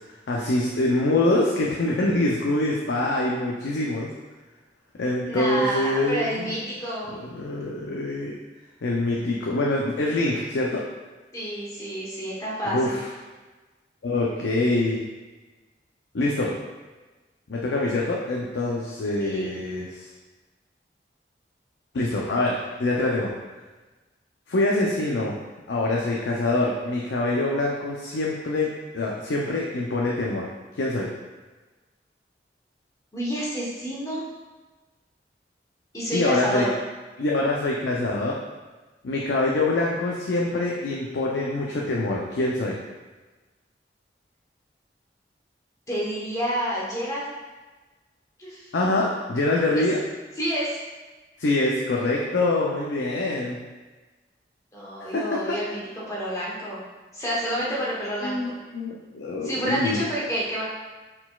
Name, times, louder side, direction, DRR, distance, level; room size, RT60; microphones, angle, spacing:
voice 1, 0.3-4.1 5.0-6.6 7.1-8.4 8.8-10.8 12.7-13.0 14.0-15.0 16.1-16.5 17.5-20.1 21.9-23.3 24.5-25.3 25.7-30.5 30.8-31.1 36.1-36.7 37.2-38.3 39.0-42.8 48.7-50.0 51.4-53.6 55.1-55.6 58.2-58.5 58.7-60.0, left 2 dB, 85° left, -3 dB, 0.5 m, -25 dB
voice 2, 5.3-7.1 11.3-13.0 19.2-19.5 33.1-34.2 35.9-36.7 45.9-47.3 48.4-48.7 49.7-49.8 50.4-50.9 54.7-56.8 57.1-58.4 59.4-60.6, equal, 20° left, -7 dB, 1.0 m, -29 dB
4.5 x 3.9 x 2.3 m, 1.2 s
head